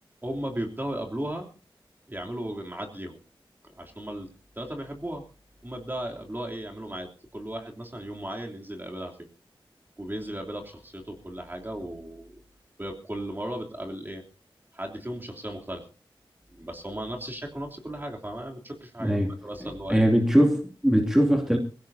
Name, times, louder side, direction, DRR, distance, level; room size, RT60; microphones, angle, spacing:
voice 1, 0.2-1.5 2.1-3.2 3.6-4.3 4.5-5.2 5.6-9.2 10.0-12.4 12.8-14.2 14.7-15.8 16.5-20.1, right 1 dB, 20° right, 2 dB, 3.2 m, -36 dB
voice 2, 19.0-19.3 19.9-21.6, equal, 5° right, 2 dB, 2.7 m, -21 dB
22.5 x 16.5 x 2.8 m, 0.33 s
wide cardioid pair, 70°, 9 cm